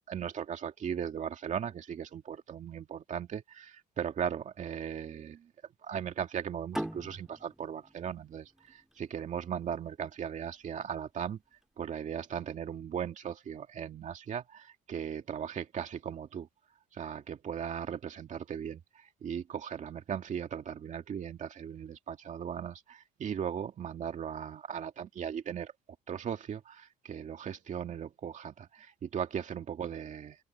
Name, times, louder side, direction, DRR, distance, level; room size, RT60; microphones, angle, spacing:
voice 1, 0.1-5.5 5.8-11.4 11.8-16.5 16.9-25.7 26.1-30.4, right 8 dB, 45° right, 2.3 m, -38 dB
sound 1, 6.7-9.9, equal, 5° right, 1.7 m, -41 dB
open air
cardioid pair, 110°, 17 cm